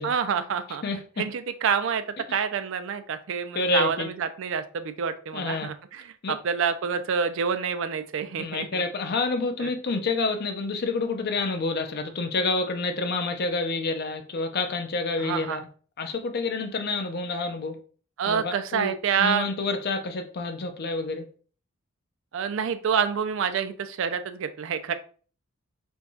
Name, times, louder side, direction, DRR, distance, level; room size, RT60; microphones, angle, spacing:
voice 1, 0.0-0.8 1.2-2.0 2.3-8.8 9.6-9.7 15.2-15.6 18.2-19.5 22.3-24.9, right 6 dB, 60° right, 10 dB, 0.4 m, -27 dB
voice 2, 0.8-1.3 3.5-4.1 5.3-5.7 6.2-6.4 8.4-15.6 16.0-17.8 18.3-21.3, left 3 dB, 50° left, 7 dB, 0.5 m, -28 dB
4.5 x 2.3 x 2.7 m, 0.41 s
head